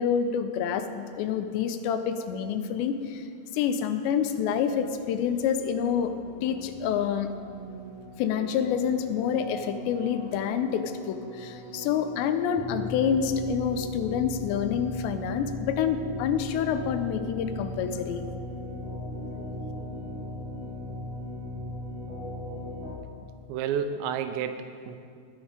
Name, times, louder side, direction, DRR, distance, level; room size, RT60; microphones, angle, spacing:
voice 1, 0.0-3.2 3.5-6.1 6.4-7.3 8.2-18.2, left 8 dB, 80° left, 9 dB, 2.8 m, -27 dB
sound 1, 4.6-22.9, left 1 dB, 50° right, 1.4 m, -39 dB
voice 2, 23.5-25.0, right 7 dB, 85° right, 8 dB, 3.0 m, -30 dB
20.0 x 7.2 x 5.1 m, 2.2 s
omnidirectional pair, 5.1 m